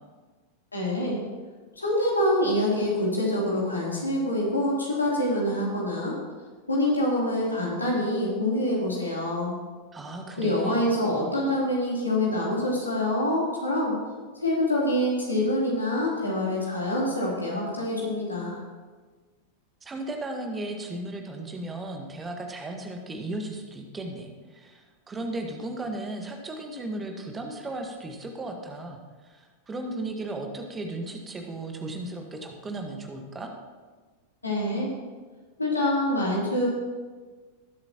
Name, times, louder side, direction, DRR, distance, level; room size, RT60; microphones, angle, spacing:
voice 1, 0.7-1.2 1.8-6.2 6.7-9.5 10.3-14.0 14.3-18.6 34.4-34.9 35.6-36.7, left 1 dB, 80° left, -4 dB, 3.1 m, -26 dB
voice 2, 9.9-10.8 19.8-33.5, right 2 dB, 15° right, 3 dB, 1.5 m, -35 dB
19.5 x 7.7 x 3.0 m, 1.4 s
figure-of-eight pair, 90°, 0 cm